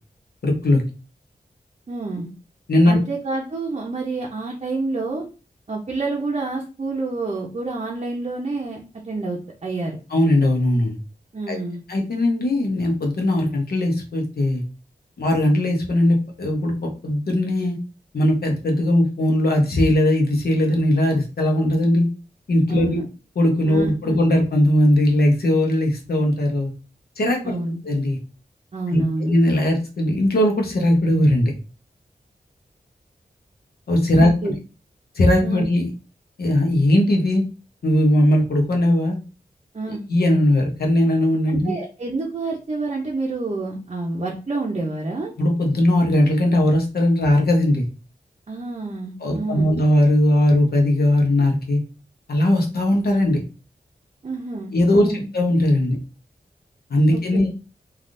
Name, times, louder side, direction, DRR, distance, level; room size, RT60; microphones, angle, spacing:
voice 1, 0.4-0.8 2.7-3.0 10.1-11.0 11.5-11.6 11.9-14.6 15.2-16.7 17.0-17.8 18.1-22.1 22.5-23.0 23.4-26.7 27.2-27.6 27.8-28.2 28.9-31.5 33.9-34.5 35.1-35.9 36.4-37.4 37.8-39.2 40.1-41.7 45.4-47.8 49.2-51.8 52.3-53.4 54.7-56.0 56.9-57.5, left 1 dB, 75° left, 1 dB, 0.8 m, -19 dB
voice 2, 1.9-2.3 2.9-5.2 5.7-10.0 11.3-11.8 22.7-23.1 23.7-24.2 27.4-27.8 28.7-29.3 34.2-34.5 35.4-35.6 39.7-40.0 41.5-45.3 48.5-49.7 54.2-55.3 57.1-57.5, right 3 dB, 40° right, -2 dB, 0.6 m, -28 dB
3.3 x 2.4 x 2.6 m, 0.33 s
wide cardioid pair, 110°, 16 cm